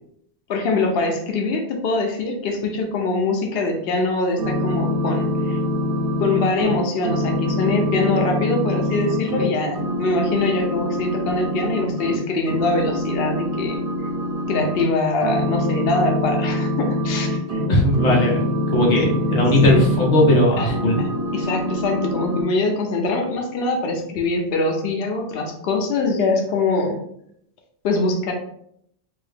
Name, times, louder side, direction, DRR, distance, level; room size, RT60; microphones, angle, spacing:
voice 1, 0.5-5.6 6.2-13.8 14.5-17.6 19.0-19.1 19.6-19.9 20.6-27.0 27.8-28.3, left 3 dB, 65° left, 3 dB, 0.8 m, -23 dB
sound 1, 4.4-9.5 9.7-12.2 12.5-14.8 15.2-20.4 20.6-22.4, left 1 dB, 60° right, 0.8 m, -24 dB
voice 2, 17.7-18.4 18.7-21.0, left 1 dB, 90° left, -2 dB, 1.1 m, -17 dB
2.8 x 2.7 x 3.4 m, 0.71 s
omnidirectional pair, 1.1 m